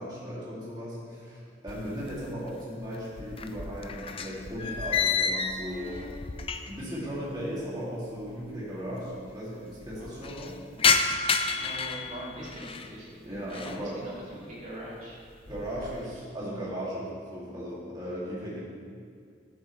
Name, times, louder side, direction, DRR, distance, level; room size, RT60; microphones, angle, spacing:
voice 1, 0.0-6.0 6.7-10.6 13.3-14.0 15.5-18.6, equal, 25° right, -9 dB, 2.6 m, -37 dB
sound 1, 1.7-2.6 2.8-6.9 7.2-7.3 8.2-8.3 8.4-8.5 8.8-9.3 9.7-12.9 13.4-13.9 14.3-14.7 15.1-16.0, left 5 dB, 30° left, 0.5 m, -30 dB
voice 2, 11.5-15.2 15.8-16.0, right 1 dB, 45° right, -6 dB, 2.7 m, -42 dB
14.0 x 8.2 x 3.3 m, 2.1 s
head